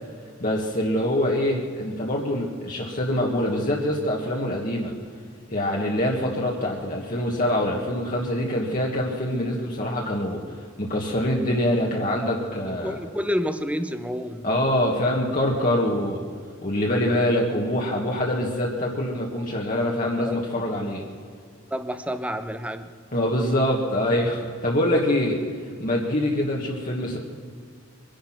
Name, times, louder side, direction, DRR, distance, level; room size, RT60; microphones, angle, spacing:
voice 1, 0.4-4.9 5.5-13.0 14.4-16.2 16.6-21.0 23.1-27.2, left 1 dB, 40° left, -2 dB, 1.6 m, -25 dB
voice 2, 12.8-14.5 20.2-20.4 21.7-22.9, equal, 5° right, 10 dB, 0.8 m, -29 dB
23.5 x 10.5 x 5.9 m, 2.1 s
head